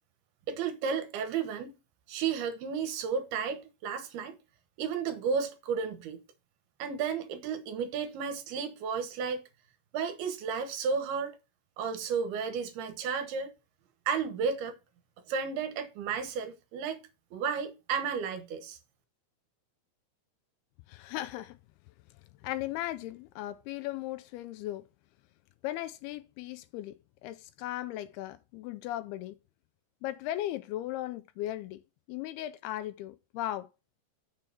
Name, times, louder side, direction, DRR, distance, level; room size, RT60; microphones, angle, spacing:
voice 1, 0.5-1.7 2.1-4.4 4.8-6.2 6.8-9.4 9.9-11.3 11.8-13.5 14.1-14.7 15.3-17.0 17.3-18.8, right 6 dB, 75° right, 2.9 m, -33 dB
voice 2, 20.9-21.6 22.4-24.8 25.6-29.4 30.0-31.8 32.1-33.7, left 14 dB, 80° left, 2.4 m, -37 dB
6.9 x 4.5 x 6.7 m
omnidirectional pair, 4.8 m